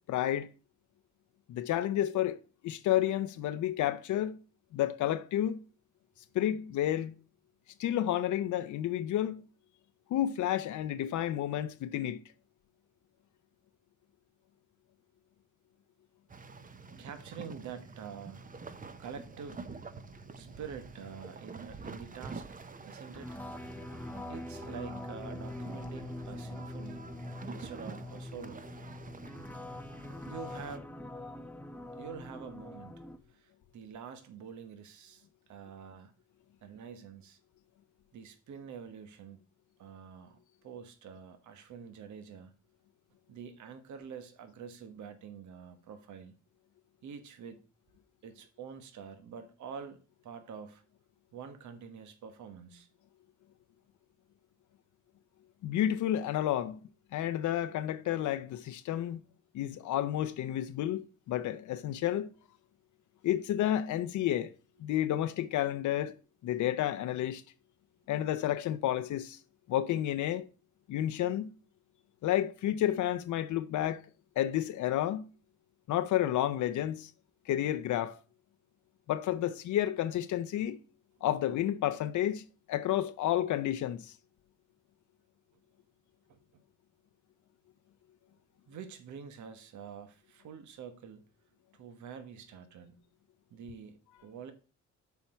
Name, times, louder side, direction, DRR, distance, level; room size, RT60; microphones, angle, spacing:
voice 1, 0.1-0.5 1.5-2.4 2.6-4.4 4.7-5.6 6.3-7.1 7.8-9.4 10.1-12.2 55.6-56.8 57.1-59.2 59.5-62.3 63.2-64.5 64.8-66.1 66.4-67.4 68.1-69.4 69.7-70.5 70.9-71.5 72.2-74.0 74.4-75.3 75.9-77.1 77.5-78.2 79.1-80.8 81.2-84.1, left 12 dB, 75° left, 0.7 m, -30 dB
sound 1, 16.3-30.8, right 4 dB, 25° right, 0.8 m, -47 dB
voice 2, 17.0-18.5 19.0-19.7 20.4-22.5 22.9-23.4 24.3-27.1 27.4-28.6 30.3-30.9 32.0-32.9 33.3-36.1 36.6-37.4 38.1-39.4 39.8-42.5 43.3-46.4 47.0-47.6 48.2-50.8 51.3-52.9 86.3-86.4 88.7-91.2 91.7-93.0 93.5-94.5, right 6 dB, 70° right, 1.2 m, -46 dB
sound 2, 23.1-33.2, left 1 dB, 5° left, 0.6 m, -43 dB
7.0 x 4.6 x 5.7 m
cardioid pair, 90°, 30 cm